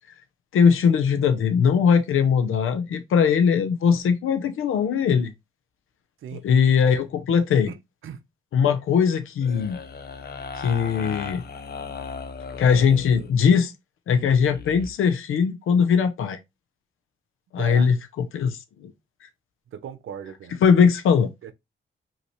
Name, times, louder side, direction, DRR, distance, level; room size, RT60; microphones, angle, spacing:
voice 1, 0.5-5.3 6.3-7.7 8.5-9.8 10.6-11.4 12.6-13.7 14.1-16.4 17.5-18.9 20.6-21.3, left 6 dB, 90° left, 0.7 m, -20 dB
voice 2, 7.7-8.2 17.6-17.9 19.7-20.6 21.4-21.5, right 9 dB, 80° right, 0.7 m, -37 dB
sound 1, 9.4-13.3 14.2-14.9, left 5 dB, 50° left, 0.7 m, -37 dB
5.5 x 2.9 x 3.1 m
cardioid pair, 105°, 21 cm